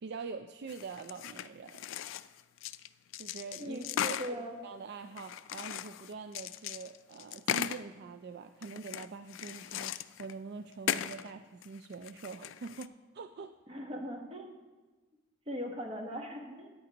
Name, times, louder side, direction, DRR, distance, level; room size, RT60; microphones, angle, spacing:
voice 1, 0.0-1.9 3.2-13.6, right 4 dB, 55° right, 8 dB, 0.3 m, -44 dB
sound 1, 0.7-2.9 3.1-4.3 5.2-7.8 8.6-10.3 10.7-11.3 11.6-12.9, left 10 dB, 70° left, 0.3 m, -38 dB
voice 2, 3.6-4.6 13.7-14.5 15.5-16.7, equal, 30° right, 2 dB, 1.1 m, -39 dB
13.5 x 9.1 x 2.9 m, 1.2 s
head